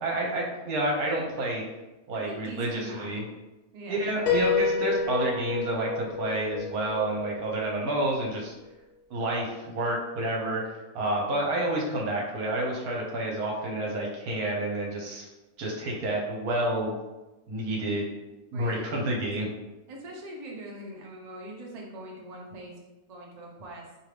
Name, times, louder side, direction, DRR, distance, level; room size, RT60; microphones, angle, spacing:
voice 1, 0.0-1.6 2.1-3.2 3.9-8.5 9.1-10.6 10.9-15.2 15.6-17.0 17.5-18.1 18.5-19.5, right 1 dB, 70° right, -2 dB, 1.4 m, -29 dB
voice 2, 2.3-3.2 3.7-4.0 18.5-18.8 19.4-19.5 19.9-22.8 23.1-23.9, right 1 dB, 45° right, -1 dB, 0.5 m, -42 dB
Piano, 4.3-8.0, left 5 dB, 85° left, 1.1 m, -29 dB
4.4 x 2.7 x 3.3 m, 1.1 s
omnidirectional pair, 1.6 m